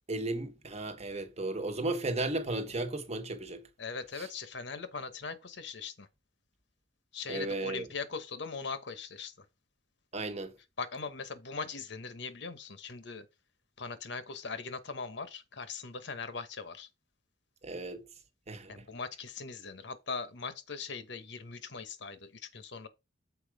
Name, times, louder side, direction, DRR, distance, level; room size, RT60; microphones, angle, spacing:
voice 1, 0.0-3.7 4.2-4.3 7.3-7.9 10.1-10.5 17.6-18.1 18.5-18.7, right 2 dB, 35° right, 1.2 m, -35 dB
voice 2, 3.8-6.1 7.1-9.5 10.8-13.3 13.8-16.9 18.7-22.9, left 4 dB, 65° left, 1.1 m, -40 dB
7.1 x 4.8 x 4.8 m
head